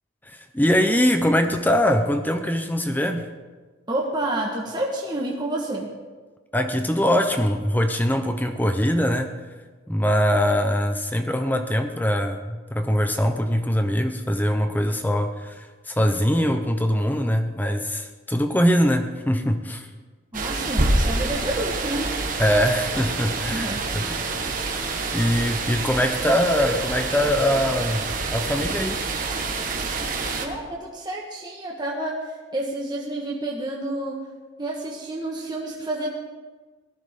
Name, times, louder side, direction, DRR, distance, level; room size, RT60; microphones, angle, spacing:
voice 1, 0.3-3.3 6.5-9.3 9.9-19.9 22.4-24.2 25.1-29.1, equal, 10° left, 7 dB, 0.7 m, -22 dB
voice 2, 3.9-5.9 20.3-22.1 23.5-23.8 25.7-25.9 30.4-32.2 32.5-34.2 34.6-36.1, right 1 dB, 20° right, -3 dB, 1.4 m, -29 dB
sound 1, 20.3-30.5, right 3 dB, 40° right, 1.4 m, -27 dB
18.0 x 13.5 x 3.7 m, 1.4 s
head